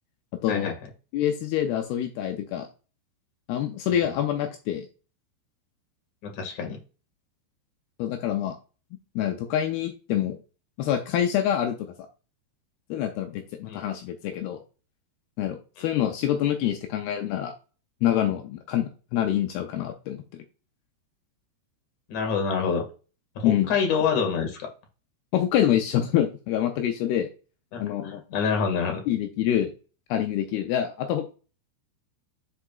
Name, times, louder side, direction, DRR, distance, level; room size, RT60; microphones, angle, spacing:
voice 1, 0.3-0.7 1.1-2.7 3.5-4.9 8.0-8.6 9.2-10.4 10.8-11.9 12.9-14.6 15.4-17.5 18.0-20.2 23.4-23.7 25.3-27.3 27.8-28.2 29.1-29.7 30.1-31.3, left 11 dB, 85° left, 5 dB, 2.2 m, -26 dB
voice 2, 6.2-6.8 13.7-13.8 15.8-15.9 22.1-22.8 23.4-24.7 27.7-29.0, left 6 dB, 50° left, 3 dB, 2.7 m, -27 dB
10.0 x 4.9 x 2.4 m, 0.34 s
omnidirectional pair, 5.4 m